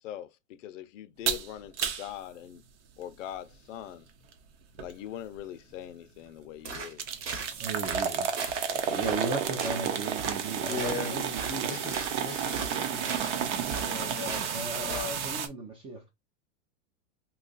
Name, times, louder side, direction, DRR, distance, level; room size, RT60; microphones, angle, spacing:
voice 1, 0.0-2.6 3.0-4.1 4.8-7.2, left 11 dB, 85° left, 0.6 m, -42 dB
sound 1, 1.3-1.5 1.8-2.1 4.8-4.9 5.4-5.5 7.0-15.5, right 8 dB, 65° right, 0.9 m, -31 dB
sound 2, 6.6-7.5 7.8-8.1 8.4-8.7 9.0-9.3 9.6-9.9 10.2-10.4 10.7-12.1 12.5-13.3 13.7-14.6 14.9-15.1, right 4 dB, 35° right, 1.0 m, -38 dB
voice 2, 7.6-11.8 14.5-16.0, right 3 dB, 15° right, 0.4 m, -36 dB
voice 3, 10.6-11.2 11.6-15.2, left 5 dB, 25° left, 0.7 m, -39 dB
2.8 x 2.4 x 3.8 m
supercardioid pair, 150°, 37 cm